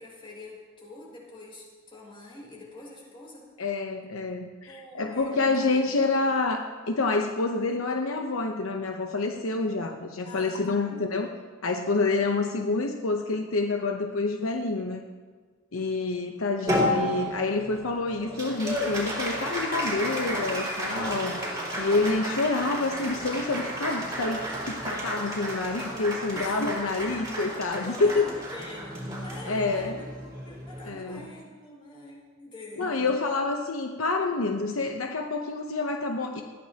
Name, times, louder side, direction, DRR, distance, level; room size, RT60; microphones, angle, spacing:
voice 1, 0.0-3.5 4.6-6.0 10.2-11.0 26.3-27.3 27.7-30.1 30.4-33.0, left 2 dB, 25° left, -4 dB, 5.1 m, -45 dB
voice 2, 3.6-11.3 11.6-15.0 15.7-21.4 21.8-28.2 29.5-30.0 30.8-31.2 32.8-36.4, left 3 dB, 75° left, 4 dB, 0.9 m, -28 dB
Applause, 16.7-31.3, equal, 15° right, 4.0 m, -32 dB
20.0 x 15.0 x 2.9 m, 1.5 s
head